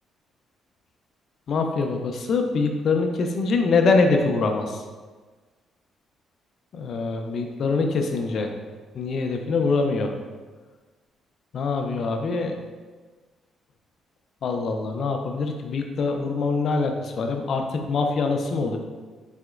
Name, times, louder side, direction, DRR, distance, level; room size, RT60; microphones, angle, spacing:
voice 1, 1.5-4.8 6.7-8.5 8.9-10.1 11.5-12.5 14.4-18.8, left 4 dB, 60° left, 4 dB, 0.4 m, -24 dB
4.1 x 2.8 x 2.4 m, 1.4 s
cardioid pair, 90°, 0 cm